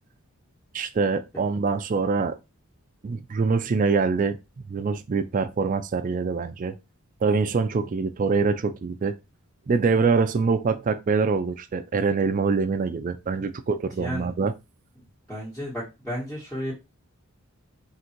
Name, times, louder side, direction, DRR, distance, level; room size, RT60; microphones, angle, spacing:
voice 1, 0.7-2.4 3.0-4.4 4.7-6.7 7.2-9.2 9.7-14.5, right 4 dB, 35° right, 0.3 m, -24 dB
voice 2, 14.0-14.4 15.3-16.7, equal, 5° left, 1.5 m, -33 dB
3.8 x 2.6 x 4.4 m
head